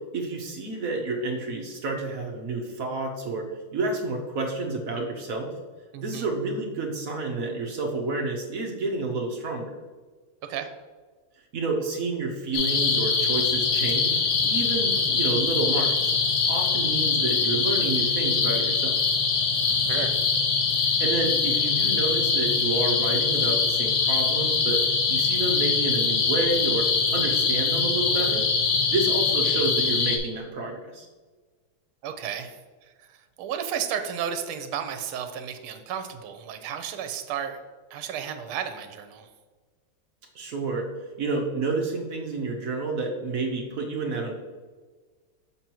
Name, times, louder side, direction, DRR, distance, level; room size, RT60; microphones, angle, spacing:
voice 1, 0.1-3.5 3.7-5.5 6.0-9.7 11.5-16.1 16.5-19.0 20.8-28.4 28.9-31.1 40.3-40.9 41.2-44.3, right 3 dB, 60° right, 1 dB, 0.9 m, -29 dB
voice 2, 5.9-6.2 10.5-10.7 19.9-20.2 32.0-32.6 33.0-37.6 37.9-39.3, right 8 dB, 80° right, 8 dB, 1.5 m, -33 dB
sound 1, 12.5-30.2, left 5 dB, 80° left, 1.8 m, -23 dB
6.9 x 6.3 x 2.9 m, 1.4 s
omnidirectional pair, 2.4 m